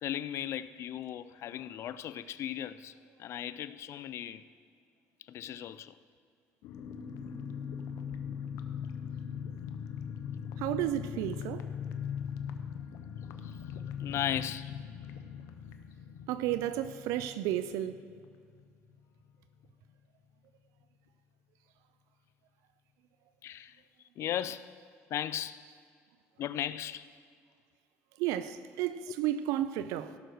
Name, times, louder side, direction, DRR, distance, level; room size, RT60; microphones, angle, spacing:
voice 1, 0.0-2.9 3.2-4.4 5.3-5.9 13.4-13.6 14.0-14.7 23.4-23.8 24.2-24.7 25.1-25.6 26.4-27.1, left 11 dB, 55° left, 0.4 m, -36 dB
sound 1, 6.6-19.0 19.3-19.4 19.6-19.9, left 7 dB, 85° left, 0.8 m, -40 dB
voice 2, 10.6-11.7 16.3-18.0 28.2-30.2, right 12 dB, 90° right, 0.4 m, -32 dB
16.5 x 6.4 x 4.7 m
cardioid pair, 115°, 5 cm